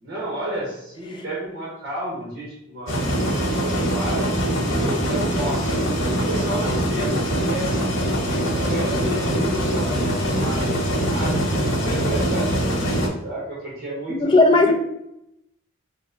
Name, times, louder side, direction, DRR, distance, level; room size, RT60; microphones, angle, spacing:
voice 1, 0.0-7.8 8.3-10.6 11.1-11.4 11.7-14.7, right 1 dB, 50° right, -6 dB, 1.1 m, -32 dB
sound 1, 2.9-13.1, equal, 90° left, 1.0 m, -23 dB
voice 2, 14.1-14.7, left 2 dB, 25° left, 3 dB, 0.4 m, -15 dB
4.0 x 2.1 x 3.7 m, 0.80 s
head